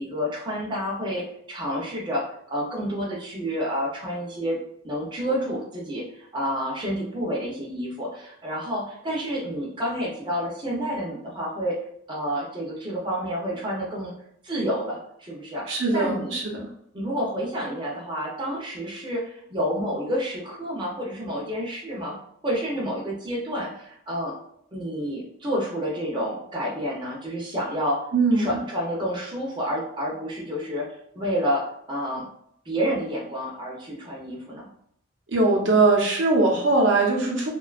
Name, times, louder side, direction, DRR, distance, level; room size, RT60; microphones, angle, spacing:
voice 1, 0.0-4.6 4.8-11.8 12.1-14.1 14.4-16.4 16.9-22.2 22.4-24.3 24.7-28.0 28.4-30.9 31.1-32.3 32.7-34.7, equal, 25° right, -4 dB, 0.5 m, -29 dB
voice 2, 15.7-16.6 28.1-28.6 35.3-37.5, right 3 dB, 75° right, -2 dB, 0.6 m, -21 dB
2.5 x 2.2 x 2.3 m, 0.70 s
head